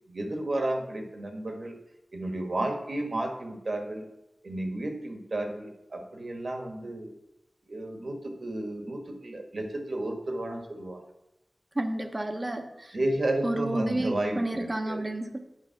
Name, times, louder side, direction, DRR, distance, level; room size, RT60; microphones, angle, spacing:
voice 1, 0.1-1.7 2.1-4.0 4.4-7.1 7.7-11.0 12.9-15.1, right 1 dB, 55° right, 3 dB, 1.6 m, -32 dB
voice 2, 11.8-13.0 13.4-15.4, right 1 dB, 30° right, 5 dB, 0.9 m, -31 dB
9.7 x 5.3 x 5.9 m, 0.91 s
wide cardioid pair, 85°, 0 cm